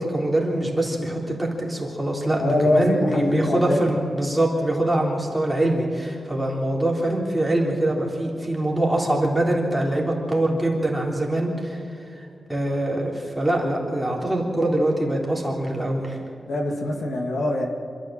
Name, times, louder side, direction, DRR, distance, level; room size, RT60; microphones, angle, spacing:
voice 1, 0.0-11.8 12.5-16.2, right 1 dB, 5° right, -3 dB, 3.5 m, -24 dB
voice 2, 2.4-3.8 16.5-17.7, left 1 dB, 65° left, 2 dB, 2.4 m, -23 dB
26.5 x 13.5 x 7.6 m, 2.6 s
wide cardioid pair, 155°, 0 cm